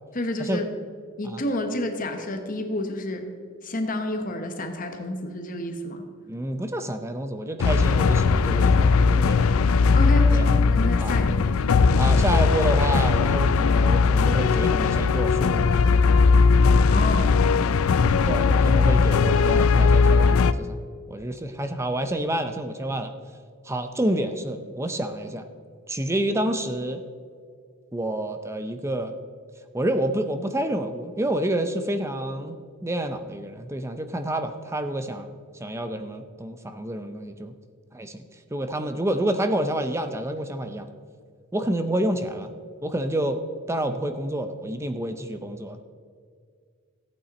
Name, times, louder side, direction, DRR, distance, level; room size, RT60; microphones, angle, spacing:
voice 1, 0.1-0.7 1.2-3.3 3.6-6.1 9.9-11.6 16.9-18.0, left 1 dB, 40° left, 6 dB, 1.1 m, -30 dB
voice 2, 6.3-9.5 10.3-10.4 11.0-11.1 12.0-15.8 18.3-20.8 21.1-23.1 23.6-25.4 25.9-27.0 27.9-29.1 29.7-35.3 35.6-37.5 37.9-38.2 38.5-40.9 41.5-42.5 42.8-43.4 43.7-45.8, right 1 dB, 15° right, 8 dB, 0.5 m, -28 dB
sound 1, 7.6-20.5, left 4 dB, 75° left, 0.4 m, -19 dB
14.0 x 8.7 x 4.2 m, 2.1 s
head